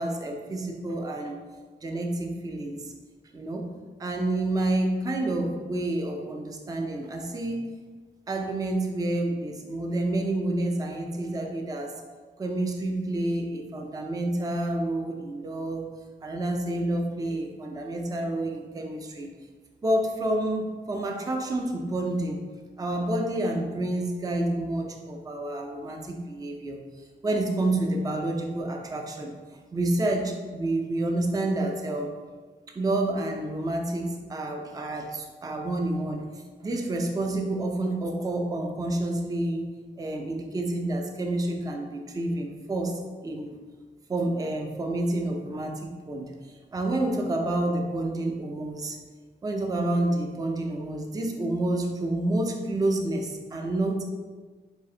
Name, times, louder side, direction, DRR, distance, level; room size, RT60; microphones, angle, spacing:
voice 1, 0.0-1.3 1.8-2.9 3.3-3.7 4.0-7.7 8.3-11.9 12.4-15.9 16.2-19.3 19.8-22.4 22.8-26.8 27.2-29.4 29.7-32.1 32.8-36.3 36.6-39.7 40.0-43.6 44.1-46.3 46.7-49.0 49.4-54.0, right 1 dB, 20° right, 2 dB, 0.4 m, -29 dB
4.0 x 2.5 x 3.7 m, 1.4 s
wide cardioid pair, 170°, 19 cm